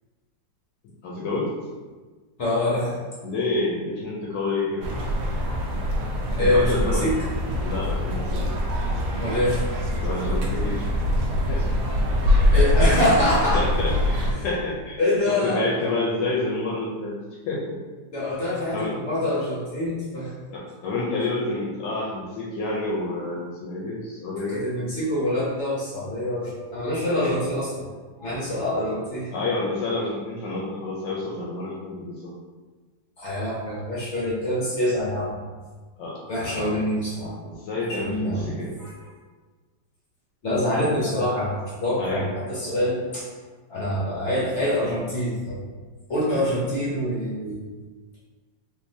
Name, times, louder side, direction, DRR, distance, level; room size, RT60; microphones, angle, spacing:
voice 1, 1.0-1.5 3.2-4.9 6.4-7.1 7.6-8.5 10.0-10.9 11.4-11.7 12.8-12.9 13.5-15.0 15.3-17.2 17.5-17.8 18.7-18.9 20.5-24.7 27.0-27.4 29.3-32.3 36.0-36.2 36.4-36.8 37.4-38.7 42.0-42.3 46.3-46.6, left 2 dB, 75° left, -3 dB, 1.2 m, -29 dB
voice 2, 2.4-3.0 6.4-7.2 9.1-9.6 12.5-13.6 14.4-14.5 15.0-15.9 18.1-20.3 24.5-27.8 28.2-29.3 33.2-35.4 36.3-37.6 37.9-38.5 38.8-38.9 40.4-43.3 43.7-45.6 46.1-47.7, left 1 dB, 55° left, -7 dB, 0.8 m, -25 dB
sound 1, 4.8-14.3, left 1 dB, 70° right, 1.1 m, -23 dB
3.7 x 2.7 x 2.6 m, 1.4 s
omnidirectional pair, 2.0 m